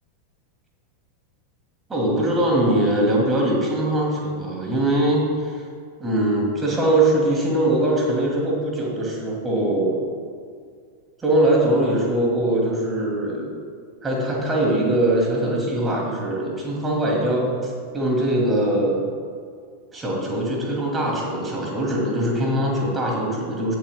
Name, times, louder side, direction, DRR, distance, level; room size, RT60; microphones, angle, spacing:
voice 1, 1.9-5.6 6.0-10.0 11.2-13.5 14.0-19.0 19.9-23.8, right 1 dB, 15° right, -2 dB, 2.4 m, -22 dB
17.5 x 7.7 x 2.2 m, 2.1 s
figure-of-eight pair, 90°, 0 cm